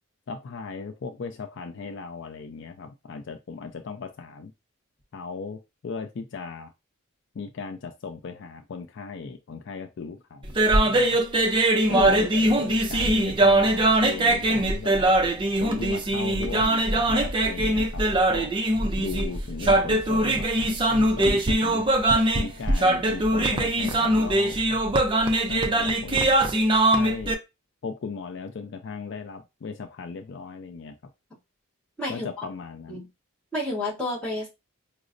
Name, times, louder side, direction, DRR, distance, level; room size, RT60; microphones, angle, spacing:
voice 1, 0.3-4.5 5.1-6.7 7.3-11.2 11.9-15.1 15.6-18.5 19.0-21.8 22.3-24.8 25.5-26.3 27.0-27.3 27.8-30.9 32.1-33.0, left 5 dB, 55° left, 6 dB, 0.4 m, -37 dB
sound 1, 10.4-27.3, right 1 dB, 25° right, 0.4 m, -22 dB
voice 2, 11.9-12.3 32.0-32.4 32.9-33.1 33.5-34.5, left 1 dB, 5° left, -5 dB, 1.3 m, -30 dB
5.0 x 2.0 x 2.5 m, 0.24 s
head